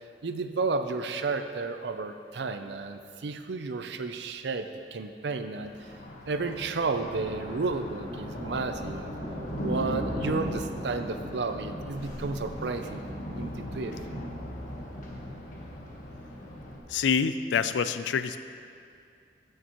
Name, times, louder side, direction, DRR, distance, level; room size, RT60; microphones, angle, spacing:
voice 1, 0.2-5.7 6.3-9.1 9.6-13.0 13.4-14.0, right 3 dB, 70° right, 8 dB, 0.5 m, -32 dB
Thunder, 5.6-16.8, equal, 45° left, 1.2 m, -37 dB
voice 2, 16.9-18.4, left 6 dB, 85° left, 12 dB, 0.4 m, -26 dB
13.5 x 6.5 x 3.0 m, 2.4 s
head